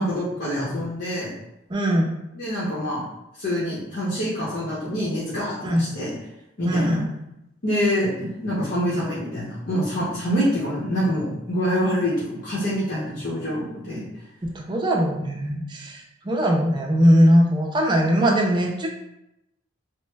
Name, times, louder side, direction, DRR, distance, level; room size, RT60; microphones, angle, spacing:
voice 1, 0.0-1.3 2.3-3.0 3.4-6.1 6.6-7.0 7.6-14.1, equal, 55° left, -8 dB, 0.8 m, -26 dB
voice 2, 1.7-2.1 5.6-5.8 6.6-7.1 14.4-18.9, equal, 25° right, 0 dB, 0.4 m, -20 dB
3.0 x 2.0 x 3.3 m, 0.86 s
head